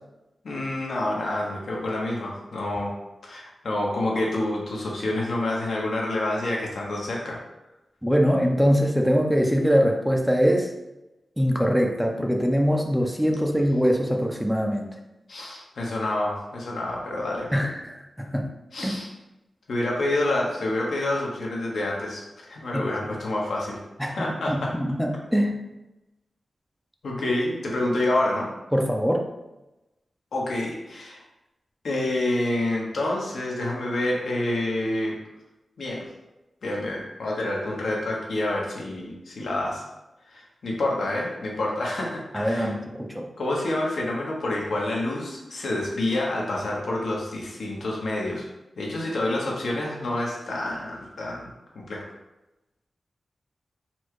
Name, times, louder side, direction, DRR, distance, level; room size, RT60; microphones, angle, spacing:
voice 1, 0.4-2.9 3.2-7.4 15.3-17.5 18.7-19.1 19.7-24.7 27.0-28.5 30.3-31.2 31.8-35.2 35.8-36.0 36.6-39.8 40.3-42.7 43.4-48.4 48.8-52.1, left 1 dB, 80° left, -2 dB, 1.0 m, -28 dB
voice 2, 8.0-10.7 11.4-14.9 17.5-18.5 18.8-19.0 22.7-22.8 24.0-25.5 28.7-29.2 42.3-43.3, equal, ahead, 1 dB, 0.4 m, -23 dB
4.2 x 2.3 x 4.6 m, 0.98 s
wide cardioid pair, 125°, 0 cm